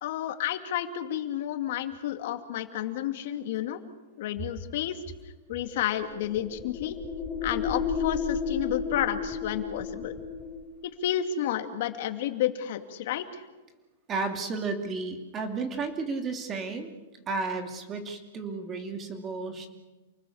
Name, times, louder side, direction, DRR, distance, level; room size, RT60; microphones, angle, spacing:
voice 1, 0.0-3.8 4.2-5.0 5.5-7.0 7.4-10.1 10.8-13.4, left 11 dB, 55° left, 7 dB, 2.4 m, -31 dB
sound 1, 5.7-10.7, left 5 dB, 10° left, 3.3 m, -32 dB
voice 2, 14.1-17.0 17.3-19.7, right 4 dB, 20° right, 5 dB, 2.6 m, -33 dB
29.0 x 20.0 x 7.2 m, 1.2 s
supercardioid pair, 165°, 0 cm